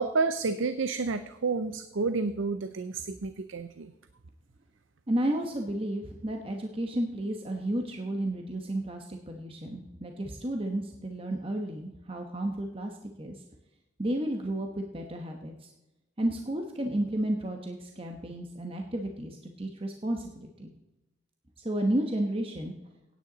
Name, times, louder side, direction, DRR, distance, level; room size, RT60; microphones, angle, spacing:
voice 1, 0.0-3.9, right 4 dB, 85° right, 11 dB, 0.6 m, -30 dB
voice 2, 5.1-12.9 13.2-13.3 14.0-15.7 16.2-20.7 21.6-22.7, right 1 dB, 30° right, 3 dB, 1.0 m, -32 dB
17.0 x 9.4 x 4.0 m, 0.96 s
head